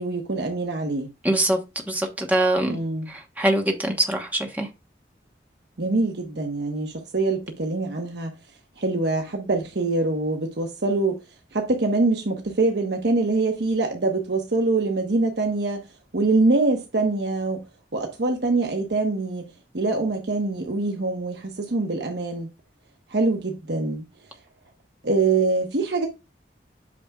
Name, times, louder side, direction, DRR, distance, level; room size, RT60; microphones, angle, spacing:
voice 1, 0.0-1.1 2.7-3.1 5.8-8.3 8.8-11.2 11.5-15.8 16.1-17.6 17.9-22.5 23.1-24.0 25.0-26.1, right 3 dB, 70° right, 1.0 m, -24 dB
voice 2, 1.2-1.6 1.9-2.8 3.4-4.3 4.6-4.7, right 1 dB, 10° right, 1.1 m, -22 dB
8.4 x 6.0 x 2.3 m
head